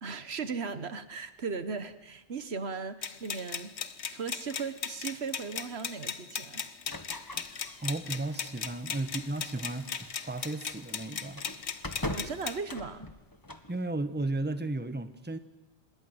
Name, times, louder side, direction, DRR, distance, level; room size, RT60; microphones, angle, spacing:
voice 1, 0.0-3.7 4.1-6.6 12.1-13.1, right 5 dB, 75° right, 13 dB, 1.5 m, -37 dB
sound 1, 3.0-12.6, left 7 dB, 85° left, 1.4 m, -38 dB
sound 2, 6.9-13.7, left 1 dB, 20° left, 1.5 m, -43 dB
voice 2, 7.8-11.4 13.7-15.4, right 2 dB, 10° right, 11 dB, 1.1 m, -34 dB
26.5 x 21.5 x 7.9 m, 1.0 s
omnidirectional pair, 1.1 m